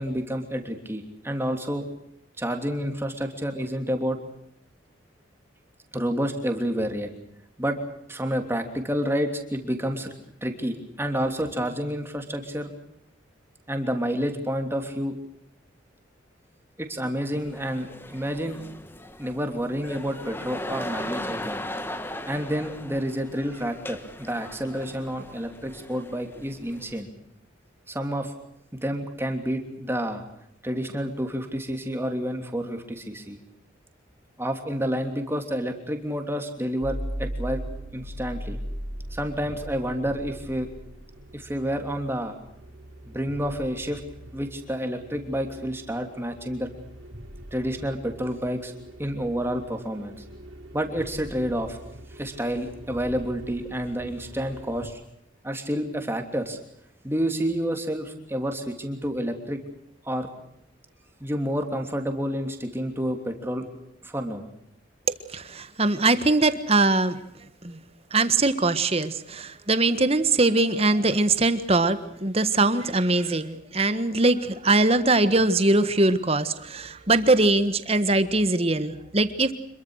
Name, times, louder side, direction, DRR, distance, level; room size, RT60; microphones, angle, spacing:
voice 1, 0.0-1.8 2.4-4.2 5.9-7.1 7.6-7.8 8.1-10.1 10.4-12.7 13.7-15.1 16.8-18.6 19.2-21.6 22.3-27.1 27.9-28.3 28.7-30.2 30.6-33.4 34.4-37.6 37.9-38.6 39.1-40.7 41.3-42.3 43.1-44.0 44.3-46.7 47.5-48.7 49.0-50.2 50.7-51.8 52.1-55.0 55.4-56.6 57.0-59.6 60.0-60.3 61.2-63.6 64.0-64.5, equal, 10° right, 5 dB, 3.0 m, -29 dB
sound 1, 17.3-27.0, left 1 dB, 10° left, 1.5 m, -38 dB
sound 2, 36.8-54.9, right 1 dB, 80° right, 4.8 m, -40 dB
voice 2, 65.3-67.2 67.6-67.8 68.1-79.5, right 2 dB, 30° right, 11 dB, 1.5 m, -22 dB
26.5 x 22.5 x 6.5 m, 0.77 s
head